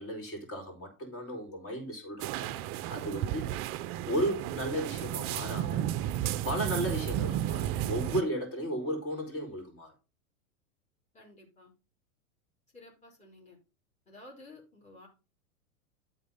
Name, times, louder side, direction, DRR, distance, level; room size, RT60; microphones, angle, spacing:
voice 1, 0.0-3.6 4.1-5.9 6.4-9.9, equal, 30° left, 4.2 m, -35 dB
sound 1, 2.2-8.2, right 12 dB, 30° right, 0.5 m, -33 dB
voice 2, 11.1-11.7 12.7-13.6 14.1-15.1, left 2 dB, 15° left, 3.9 m, -53 dB
12.5 x 4.2 x 5.5 m
hypercardioid pair, 115°, 43 cm